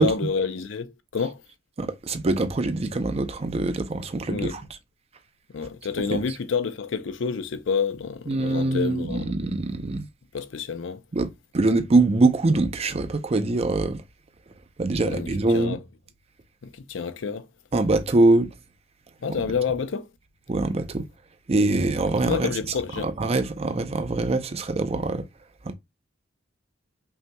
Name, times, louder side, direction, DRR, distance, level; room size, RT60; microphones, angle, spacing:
voice 1, 0.0-1.4 4.3-4.5 5.5-9.3 10.3-11.0 15.0-15.3 15.5-15.8 16.6-17.5 19.2-20.1 22.2-23.1, left 5 dB, 75° left, 0.5 m, -28 dB
voice 2, 1.8-4.6 6.1-6.2 8.3-10.1 11.1-14.0 14.8-15.8 17.7-18.5 20.5-21.0 21.5-22.6 23.0-25.2 25.6-25.7, right 2 dB, 35° right, 0.5 m, -23 dB
5.5 x 2.9 x 2.2 m
head